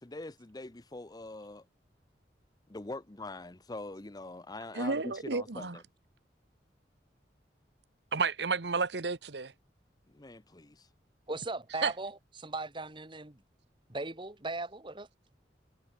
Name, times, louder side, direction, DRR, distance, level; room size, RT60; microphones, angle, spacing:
voice 1, 0.0-1.7 2.7-5.8 10.1-10.9, left 2 dB, 20° left, 0.7 m, -43 dB
voice 2, 4.7-5.8 8.1-9.5 11.8-11.9, right 4 dB, 70° right, 1.2 m, -31 dB
voice 3, 11.3-13.4 13.9-15.1, right 2 dB, 30° right, 1.8 m, -38 dB
head